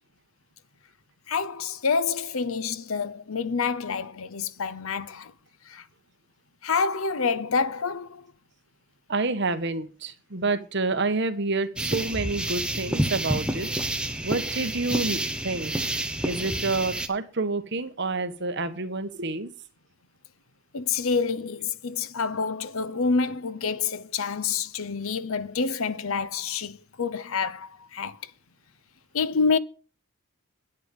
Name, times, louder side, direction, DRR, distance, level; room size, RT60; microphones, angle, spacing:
voice 1, 1.3-5.3 5.7-5.8 6.6-8.3 20.7-28.3 29.1-29.6, left 5 dB, 70° left, 0.8 m, -27 dB
voice 2, 9.1-13.7 14.2-15.7 16.2-19.5, right 3 dB, 50° right, 1.2 m, -28 dB
sound 1, 11.8-17.1, right 1 dB, 5° right, 0.9 m, -29 dB
10.5 x 9.0 x 5.2 m
head